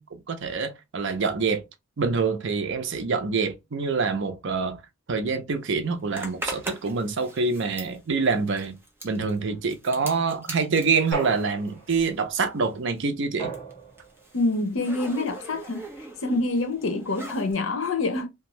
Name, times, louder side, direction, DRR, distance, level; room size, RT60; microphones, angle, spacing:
voice 1, 0.0-1.6 2.0-4.8 5.1-8.8 9.0-13.5, right 4 dB, 60° right, 0.5 m, -26 dB
Zipper (clothing), 6.1-12.3 12.6-17.5, right 1 dB, 10° right, 0.6 m, -41 dB
sound 1, 11.1-12.1 13.4-14.2, right 4 dB, 10° left, 1.3 m, -35 dB
voice 2, 14.3-15.9 16.2-18.5, left 2 dB, 75° left, 0.7 m, -26 dB
2.6 x 2.3 x 3.0 m
head